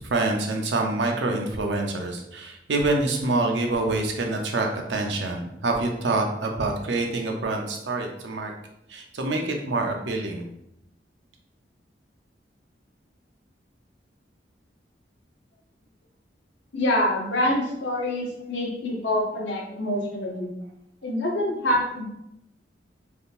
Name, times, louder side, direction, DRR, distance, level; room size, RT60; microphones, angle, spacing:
voice 1, 0.0-8.5 8.9-10.5, right 2 dB, 85° right, 2 dB, 0.6 m, -26 dB
voice 2, 16.7-20.5 21.0-22.0, left 1 dB, 85° left, -1 dB, 0.8 m, -26 dB
3.4 x 2.7 x 2.5 m, 0.80 s
head